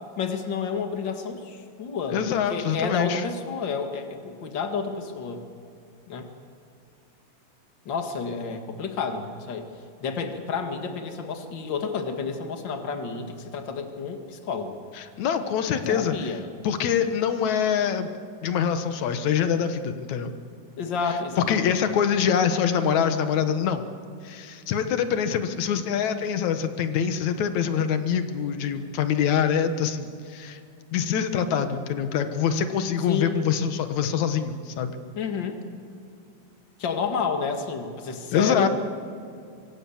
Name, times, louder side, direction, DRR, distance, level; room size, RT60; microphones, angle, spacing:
voice 1, 0.2-2.2 2.5-5.4 6.1-6.3 7.9-9.7 10.0-14.8 15.9-16.4 20.8-21.7 33.1-33.4 35.1-35.6 36.8-38.7, left 5 dB, 40° left, 5 dB, 2.1 m, -30 dB
voice 2, 2.1-3.2 15.0-16.3 16.6-18.1 18.4-20.3 21.5-23.8 24.2-30.6 30.9-34.9 38.3-38.7, left 7 dB, 60° left, 9 dB, 2.3 m, -25 dB
24.5 x 24.0 x 7.3 m, 2.4 s
omnidirectional pair, 4.1 m